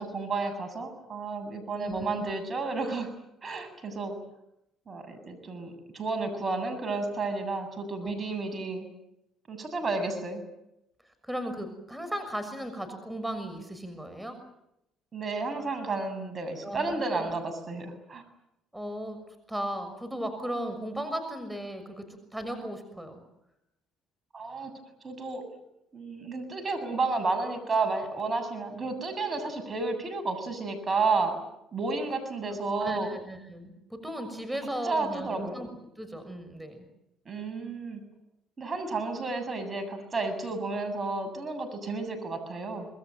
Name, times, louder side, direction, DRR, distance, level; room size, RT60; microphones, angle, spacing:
voice 1, 0.0-3.1 3.4-4.2 4.9-8.8 9.5-10.4 15.1-18.2 24.3-24.7 25.0-25.4 25.9-31.4 31.7-33.2 34.8-35.6 37.3-38.0 38.6-42.9, right 3 dB, 35° right, 9 dB, 7.6 m, -31 dB
voice 2, 1.8-2.3 8.0-8.1 11.0-14.4 16.6-17.3 18.7-19.2 19.5-23.2 32.5-35.7 36.0-36.9, right 1 dB, 5° right, 8 dB, 6.4 m, -36 dB
26.5 x 21.5 x 9.2 m, 0.84 s
supercardioid pair, 75°, 0 cm